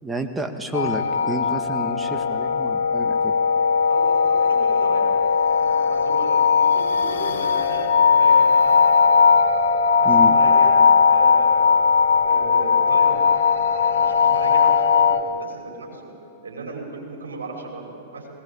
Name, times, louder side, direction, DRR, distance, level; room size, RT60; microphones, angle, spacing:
voice 1, 0.0-3.4 10.1-10.4, equal, 5° right, 5 dB, 2.0 m, -29 dB
sound 1, 0.7-15.2, left 5 dB, 70° left, 1.3 m, -18 dB
voice 2, 3.9-5.1 5.5-8.7 10.0-11.7 12.2-13.5 13.7-16.1 16.4-18.3, right 3 dB, 80° right, -1 dB, 6.0 m, -36 dB
20.5 x 19.0 x 8.6 m, 2.6 s
hypercardioid pair, 100°, 0 cm